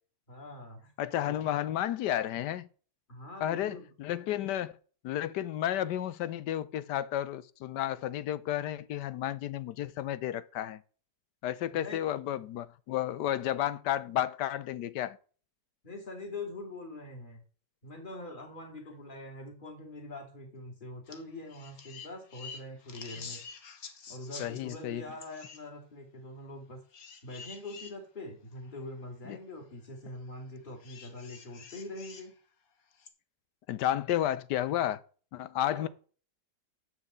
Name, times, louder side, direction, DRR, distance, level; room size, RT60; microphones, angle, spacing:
voice 1, 0.3-0.9 1.2-1.5 3.1-3.9 11.7-12.1 15.8-17.4 17.8-23.4 24.1-26.8 27.2-32.3 35.7-35.9, left 2 dB, 25° left, 2.8 m, -44 dB
voice 2, 1.0-2.7 3.4-4.7 5.0-10.8 11.4-15.2 24.4-25.0 29.3-29.4 33.7-35.0 35.3-35.9, left 12 dB, 75° left, 1.2 m, -32 dB
sound 1, 21.1-21.2 21.5-24.8 25.2-25.6 26.9-27.9 28.7-28.8 30.8-32.3 33.0-33.1, left 5 dB, 55° left, 1.6 m, -47 dB
7.3 x 6.5 x 7.9 m
omnidirectional pair, 1.9 m